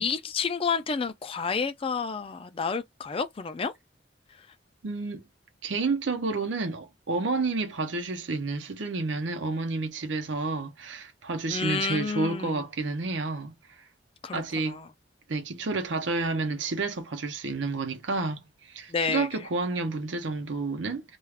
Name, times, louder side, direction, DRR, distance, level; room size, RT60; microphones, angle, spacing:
voice 1, 0.0-3.7 4.4-4.5 11.5-12.7 14.2-14.9 18.9-19.5, left 5 dB, 30° left, 0.4 m, -30 dB
voice 2, 4.8-5.3 5.6-13.5 14.3-14.8 15.3-21.2, right 3 dB, 80° right, 0.7 m, -30 dB
2.4 x 2.3 x 3.3 m
head